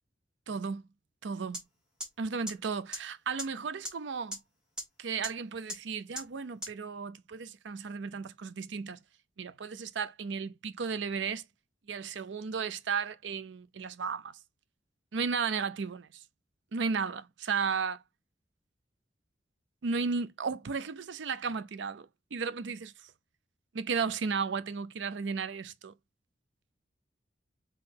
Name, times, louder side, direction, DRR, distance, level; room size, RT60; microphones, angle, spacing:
voice 1, 0.5-0.8 1.2-1.6 2.2-4.4 5.0-9.0 9.4-11.4 11.9-14.4 15.1-16.2 16.7-18.0 19.8-23.1 23.7-25.9, right 5 dB, 80° right, 0.5 m, -34 dB
sound 1, 1.5-1.6 2.0-2.1 2.5-2.6 2.9-3.0 3.4-3.5 3.9-4.0 4.3-4.4 4.8-4.9 5.2-5.3 5.7-5.8 6.2-6.3 6.6-6.7, equal, 5° right, 1.6 m, -35 dB
3.8 x 3.2 x 4.1 m
head